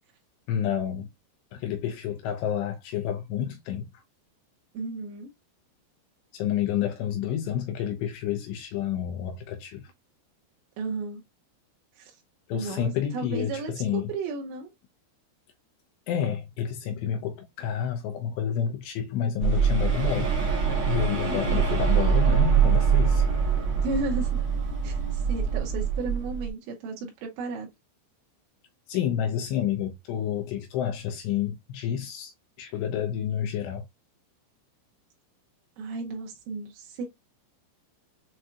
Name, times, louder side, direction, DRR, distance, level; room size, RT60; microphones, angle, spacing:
voice 1, 0.5-1.1 1.5-4.0 6.3-9.9 12.5-14.0 16.1-20.3 20.9-23.2 28.9-33.9, left 9 dB, 85° left, 2.5 m, -29 dB
voice 2, 4.7-5.3 10.8-11.2 12.0-12.1 12.5-14.7 21.2-21.7 23.8-24.3 24.8-27.7 35.8-37.0, right 3 dB, 80° right, 3.2 m, -34 dB
sound 1, 19.4-26.5, right 7 dB, 65° right, 1.4 m, -24 dB
7.5 x 2.6 x 2.2 m
omnidirectional pair, 5.4 m